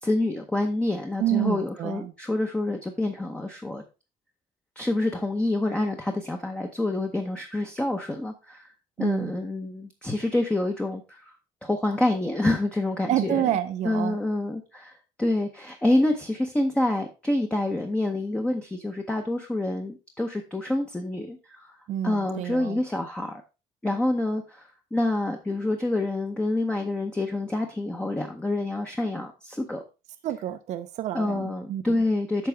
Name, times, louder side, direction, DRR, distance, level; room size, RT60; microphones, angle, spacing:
voice 1, 0.0-3.8 4.8-8.7 9.0-11.3 11.6-13.4 13.8-14.9 15.2-21.7 22.0-23.4 23.8-29.8 31.1-32.5, left 2 dB, 5° left, 0.7 m, -27 dB
voice 2, 1.2-2.1 9.0-9.3 13.1-14.2 21.9-22.8 30.2-32.0, right 12 dB, 45° right, 0.5 m, -28 dB
9.4 x 6.0 x 3.4 m
cardioid pair, 175°, 16 cm